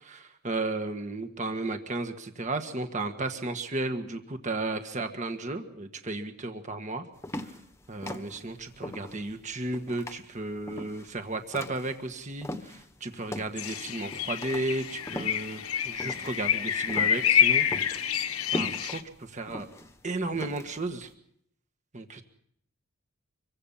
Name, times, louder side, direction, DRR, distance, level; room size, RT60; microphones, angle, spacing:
voice 1, 0.1-7.0 7.9-17.7 18.5-19.7 20.0-21.1 21.9-22.2, right 2 dB, 35° right, 6 dB, 1.6 m, -34 dB
sound 1, 7.2-12.9 13.3-21.0, left 1 dB, 15° left, 1.3 m, -40 dB
sound 2, 13.6-19.0, left 9 dB, 80° left, 1.4 m, -27 dB
26.0 x 23.5 x 5.7 m, 0.69 s
head